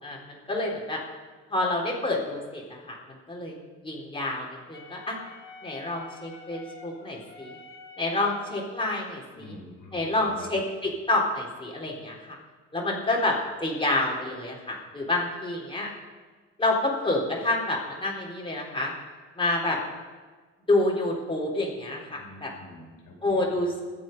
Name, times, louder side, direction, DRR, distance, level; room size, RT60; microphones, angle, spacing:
voice 1, 0.0-1.0 1.5-3.6 3.8-5.2 5.6-7.6 8.0-9.6 9.9-12.4 12.7-13.4 13.6-15.9 16.6-18.9 19.4-19.8 20.7-22.5 23.2-23.8, left 2 dB, 15° left, -2 dB, 3.9 m, -28 dB
Wind instrument woodwind instrument, 4.7-8.9, left 3 dB, 40° left, 3.6 m, -48 dB
voice 2, 9.3-10.6 22.1-23.6, left 2 dB, 85° left, -2 dB, 4.5 m, -47 dB
21.0 x 7.6 x 5.4 m, 1.4 s
cardioid pair, 90°, 30 cm